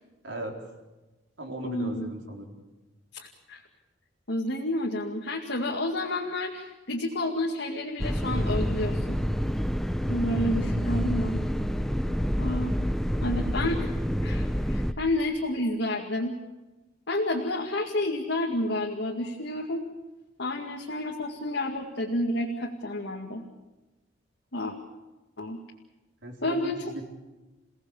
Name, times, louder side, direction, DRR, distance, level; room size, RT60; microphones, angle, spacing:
voice 1, 0.2-0.6 1.4-2.6 26.2-27.1, right 1 dB, 75° right, 1 dB, 4.1 m, -37 dB
voice 2, 1.6-2.1 3.1-3.6 4.3-9.2 10.1-11.4 12.4-12.7 13.2-16.3 17.1-19.8 20.4-23.4 24.5-24.8 25.4-25.6 26.4-26.8, left 1 dB, 65° left, 0 dB, 2.1 m, -30 dB
sound 1, 8.0-14.9, equal, ahead, 0.8 m, -28 dB
29.0 x 18.0 x 7.2 m, 1.1 s
head